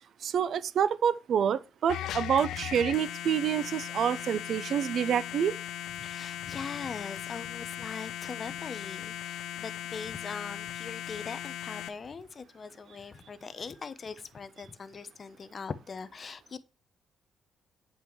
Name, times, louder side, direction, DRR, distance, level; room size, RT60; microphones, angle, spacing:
voice 1, 0.2-5.5, right 8 dB, 65° right, 0.5 m, -27 dB
sound 1, 1.9-11.9, left 11 dB, 80° left, 0.5 m, -38 dB
voice 2, 6.0-16.6, left 5 dB, 40° left, 0.7 m, -41 dB
9.3 x 5.4 x 3.1 m
cardioid pair, 90°, 0 cm